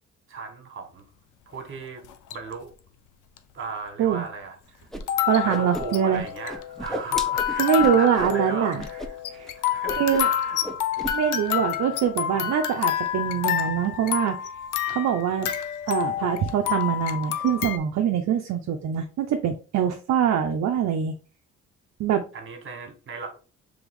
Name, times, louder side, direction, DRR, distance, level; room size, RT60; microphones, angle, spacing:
voice 1, 0.3-1.0 1.5-2.7 3.5-4.9 5.4-9.2 9.5-10.6 22.3-23.4, right 3 dB, 40° right, 5 dB, 1.5 m, -37 dB
sound 1, 2.0-2.5 3.4-3.5 5.0-17.8, left 11 dB, 85° left, 0.6 m, -28 dB
Whoosh swoosh swish, 4.9-5.0 5.3-6.2 6.5-8.4 8.8-9.1 9.3-9.5 9.8-10.4 10.6-11.2, equal, ahead, 0.6 m, -34 dB
voice 2, 5.3-6.2 7.6-8.8 9.3-9.5 10.0-10.3 11.1-14.4 14.9-15.5 15.9-21.1 22.0-22.2, right 8 dB, 65° right, 4 dB, 0.6 m, -24 dB
3.5 x 3.4 x 3.6 m, 0.35 s
cardioid pair, 90°, 30 cm